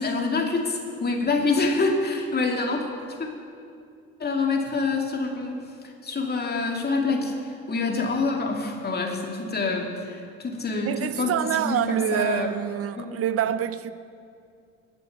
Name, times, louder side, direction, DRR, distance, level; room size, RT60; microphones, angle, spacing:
voice 1, 0.0-2.8 3.2-3.3 4.2-5.6 6.0-12.5 13.0-13.2, left 3 dB, 30° left, 2.4 m, -26 dB
voice 2, 10.9-13.9, right 10 dB, 50° right, 0.7 m, -26 dB
20.0 x 7.0 x 5.9 m
hypercardioid pair, 65°, 31 cm